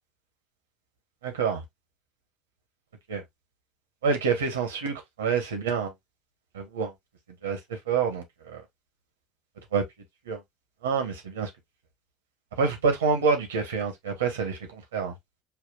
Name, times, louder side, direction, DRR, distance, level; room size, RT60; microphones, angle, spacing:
voice 1, 1.2-1.6 3.1-3.2 4.0-5.9 6.5-6.9 7.4-8.6 9.7-9.8 10.3-10.4 10.8-11.5 12.6-15.1, right 5 dB, 85° right, 1.0 m, -27 dB
5.8 x 2.3 x 2.3 m
hypercardioid pair, 65°, 0 cm